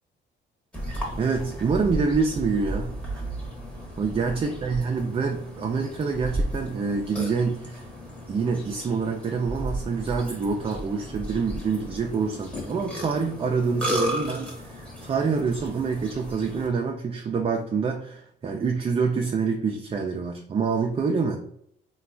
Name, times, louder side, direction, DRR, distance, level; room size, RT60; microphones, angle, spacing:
Burping eructation, 0.7-16.7, equal, 5° left, 0.9 m, -34 dB
voice 1, 0.9-2.9 4.0-7.8 8.3-21.4, right 5 dB, 30° right, 2 dB, 0.3 m, -26 dB
3.1 x 2.2 x 2.4 m, 0.70 s
cardioid pair, 90°, 20 cm